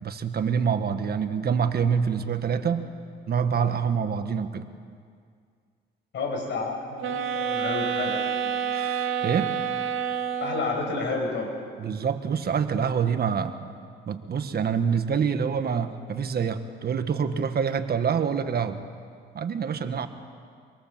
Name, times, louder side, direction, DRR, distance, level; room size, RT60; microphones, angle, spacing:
voice 1, 0.0-2.9 3.3-4.7 8.7-9.5 11.8-13.6 14.1-18.8 19.3-20.1, right 6 dB, 50° right, 8 dB, 1.6 m, -26 dB
voice 2, 6.1-8.1 10.4-11.6, left 3 dB, 70° left, 1 dB, 6.9 m, -30 dB
sound 1, 7.0-10.9, right 7 dB, 80° right, 2.1 m, -28 dB
25.5 x 23.5 x 7.6 m, 2.1 s
cardioid pair, 90°, 20 cm